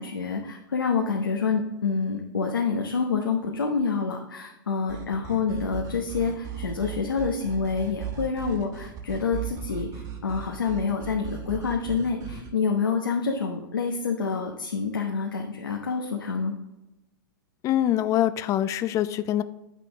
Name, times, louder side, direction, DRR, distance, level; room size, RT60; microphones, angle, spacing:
voice 1, 0.0-16.5, left 5 dB, 85° left, 1 dB, 1.0 m, -27 dB
sound 1, 4.9-12.5, right 9 dB, 30° right, 1.3 m, -37 dB
voice 2, 17.6-19.4, left 12 dB, 30° left, 14 dB, 0.4 m, -24 dB
8.4 x 5.9 x 3.5 m, 0.96 s
hypercardioid pair, 115°, 11 cm